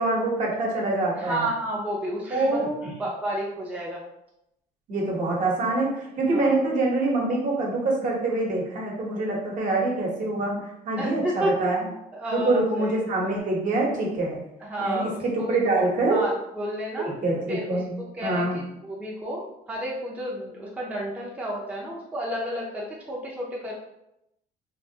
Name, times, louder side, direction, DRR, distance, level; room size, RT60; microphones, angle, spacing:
voice 1, 0.0-1.5 2.3-2.9 4.9-11.8 12.3-14.4 14.8-16.2 17.0-17.9 18.2-18.6, right 2 dB, 50° right, -2 dB, 1.1 m, -25 dB
voice 2, 1.2-4.0 6.3-6.5 11.0-11.7 12.1-13.0 14.6-15.8 16.1-17.1 17.5-23.7, right 1 dB, 10° right, -4 dB, 0.6 m, -31 dB
3.3 x 2.5 x 2.8 m, 0.83 s
cardioid pair, 110°, 17 cm